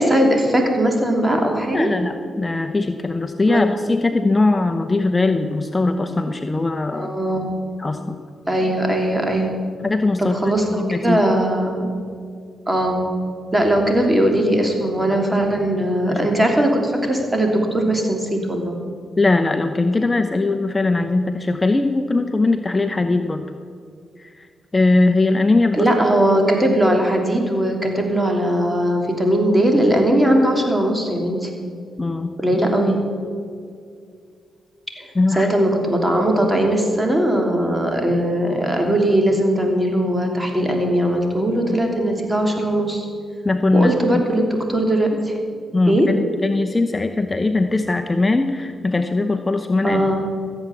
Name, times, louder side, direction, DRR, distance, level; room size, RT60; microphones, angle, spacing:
voice 1, 0.0-1.9 3.5-3.6 6.9-7.5 8.5-9.5 10.2-11.9 12.7-13.0 13.5-18.8 25.7-31.5 32.4-33.0 35.0-43.1 43.7-45.4 45.9-46.1 49.8-50.2, right 1 dB, 20° right, 2 dB, 3.2 m, -19 dB
voice 2, 1.7-7.1 7.8-8.2 9.8-11.2 15.1-15.2 16.1-16.6 19.2-23.5 24.2-24.3 24.7-25.9 32.0-32.6 35.1-35.5 43.4-43.9 45.7-50.0, left 2 dB, 30° left, 6 dB, 0.8 m, -20 dB
14.5 x 8.3 x 7.3 m, 2.2 s
supercardioid pair, 50°, 0 cm